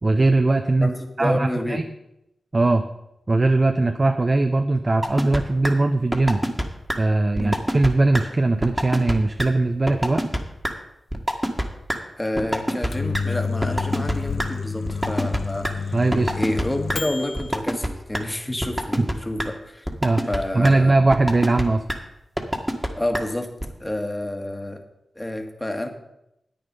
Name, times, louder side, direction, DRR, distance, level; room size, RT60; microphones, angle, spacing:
voice 1, 0.0-0.9 1.2-1.8 2.5-2.9 3.3-6.4 7.0-10.2 15.9-16.3 19.0-19.1 20.0-20.2 20.5-21.8, right 2 dB, 40° right, 6 dB, 0.8 m, -20 dB
voice 2, 0.8-1.8 7.4-7.5 12.2-16.0 16.3-19.9 20.3-20.9 23.0-23.5 23.8-24.8 25.2-25.9, left 1 dB, 20° left, 5 dB, 1.9 m, -29 dB
sound 1, 5.0-5.4 5.6-5.7 6.1-6.6 6.9-7.0 7.4-7.9 8.1-8.2 8.6-9.1 9.4-9.5 9.9-10.4 10.6-10.7 11.1-11.6 11.9-12.0 12.4-12.9 13.1-13.2 13.6-14.5 14.9-15.7 16.1-16.6 16.9-17.0 17.4-17.9 18.1-18.2 18.6-19.1 19.4-19.5 19.9-20.4 20.6-20.7 21.1-21.6 21.9-22.0 22.4-22.9 23.1-23.2 23.6-23.7, equal, 10° right, 1.8 m, -24 dB
Microwave oven, 12.7-17.5, left 5 dB, 80° left, 0.6 m, -29 dB
10.0 x 8.7 x 5.5 m, 0.84 s
cardioid pair, 50°, 0 cm